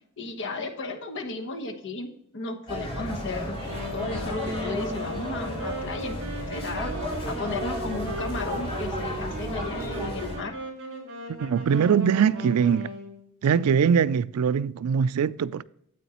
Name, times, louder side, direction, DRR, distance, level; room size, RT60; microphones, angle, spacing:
voice 1, 0.2-2.1 2.3-3.6 3.9-6.2 6.5-6.9 7.2-10.5, left 3 dB, 60° left, 1.1 m, -34 dB
sound 1, 2.7-10.4, equal, 25° left, 3.3 m, -33 dB
Wind instrument woodwind instrument, 3.5-13.2, right 1 dB, 60° right, 3.5 m, -37 dB
voice 2, 11.3-12.9 13.4-15.6, right 7 dB, 90° right, 0.4 m, -22 dB
9.4 x 8.2 x 2.9 m
head